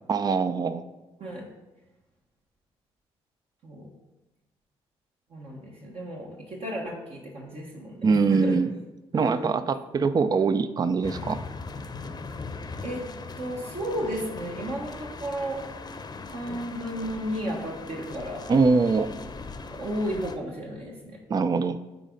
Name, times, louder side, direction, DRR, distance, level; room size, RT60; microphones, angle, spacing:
voice 1, 0.1-0.8 8.0-8.7 9.1-11.4 18.5-19.1 21.3-21.8, right 4 dB, 35° right, 13 dB, 0.4 m, -23 dB
voice 2, 5.3-8.6 9.1-9.5 12.8-13.0 13.4-15.6 16.3-18.5 19.7-21.2, equal, 55° right, -2 dB, 1.4 m, -33 dB
sound 1, 11.0-20.4, left 4 dB, 35° left, 0.7 m, -39 dB
9.3 x 4.1 x 3.9 m, 1.1 s
supercardioid pair, 60°, 12 cm